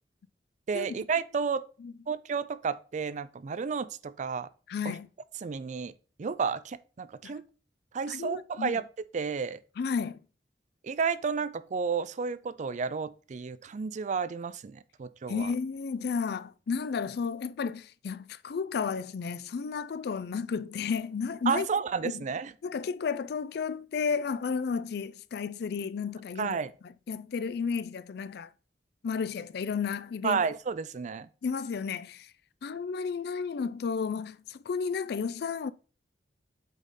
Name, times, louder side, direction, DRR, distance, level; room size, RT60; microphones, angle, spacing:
voice 1, 0.7-1.6 2.1-4.5 4.8-4.9 5.4-5.9 6.2-7.4 7.9-8.8 9.1-9.6 10.8-15.5 21.5-22.5 26.4-26.7 30.2-31.3, right 5 dB, 45° right, 0.4 m, -31 dB
voice 2, 4.7-5.1 7.2-7.4 8.1-8.8 9.8-10.2 15.3-21.7 22.6-26.6 27.1-28.5 29.0-30.4 31.4-32.3 32.6-35.7, left 5 dB, 65° left, 0.4 m, -32 dB
8.2 x 4.0 x 3.8 m
head